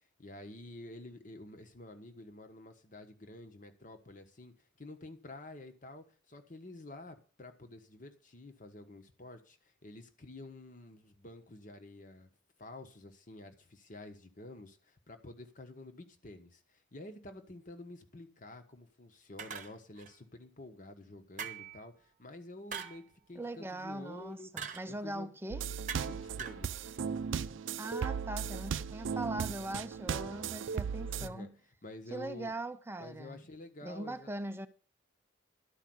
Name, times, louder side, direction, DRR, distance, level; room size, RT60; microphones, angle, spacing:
voice 1, 0.2-12.3 12.6-24.5 24.8-25.3 26.0-26.9 31.1-31.5 31.8-32.5 33.0-34.3, left 2 dB, 45° left, 1.3 m, -50 dB
sound 1, 19.4-20.1 21.4-21.8 22.7-23.0 24.6-24.9 25.9-26.1 26.4-26.6, right 7 dB, 40° right, 1.0 m, -42 dB
voice 2, 23.3-25.6 27.8-31.5 32.1-33.4 33.8-34.7, right 1 dB, 10° right, 0.4 m, -41 dB
sound 2, 25.5-31.3, right 6 dB, 80° right, 0.4 m, -36 dB
12.0 x 4.9 x 7.9 m
head